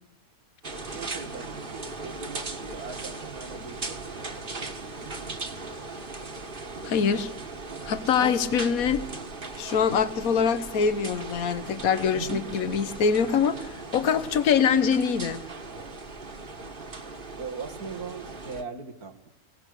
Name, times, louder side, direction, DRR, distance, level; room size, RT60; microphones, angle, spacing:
sound 1, 0.6-18.6, right 3 dB, 35° right, 1.8 m, -38 dB
voice 1, 0.8-4.1 8.2-8.5 12.1-12.4 17.4-19.3, right 4 dB, 90° right, 5 dB, 2.6 m, -39 dB
voice 2, 6.8-7.3 7.8-9.0 9.6-15.4, left 6 dB, 70° left, 12 dB, 1.6 m, -24 dB
22.5 x 18.0 x 6.7 m, 0.78 s
omnidirectional pair, 1.6 m